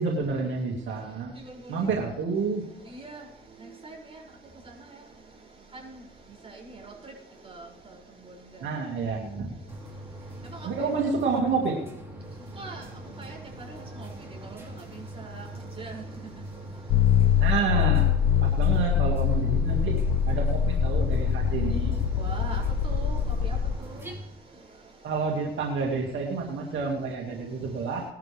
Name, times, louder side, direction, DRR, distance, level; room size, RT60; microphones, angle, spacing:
voice 1, 0.0-1.3 1.7-2.6 8.6-9.5 10.6-11.8 17.4-18.1 18.4-20.0 20.3-21.9 25.0-28.0, right 4 dB, 75° right, -1 dB, 2.4 m, -29 dB
voice 2, 2.9-3.2 3.8-4.0 6.4-6.6 6.8-6.9 7.4-7.6 10.6-10.9 12.6-12.8 13.2-13.4 13.7-14.1 14.4-14.6 15.2-15.5 15.8-16.0 22.2-24.0, right 3 dB, 30° right, -3 dB, 7.0 m, -41 dB
sound 1, 9.7-24.1, right 1 dB, 15° right, 5.6 m, -42 dB
sound 2, 16.9-23.8, left 8 dB, 75° left, 0.8 m, -24 dB
19.5 x 12.0 x 3.6 m, 0.84 s
cardioid pair, 90°, 20 cm